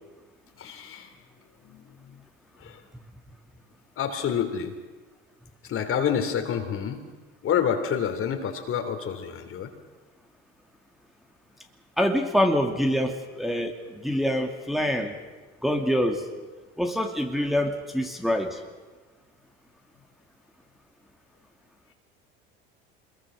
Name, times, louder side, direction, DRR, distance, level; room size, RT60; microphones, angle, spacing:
voice 1, 0.6-1.1 1.6-2.2 2.6-2.8 4.0-4.7 5.7-7.0 7.4-9.7, left 8 dB, 45° left, 7 dB, 3.2 m, -28 dB
voice 2, 12.0-15.1 15.6-16.3 16.8-18.6, equal, ahead, 2 dB, 2.4 m, -25 dB
24.5 x 22.0 x 6.3 m, 1.3 s
hypercardioid pair, 80°, 29 cm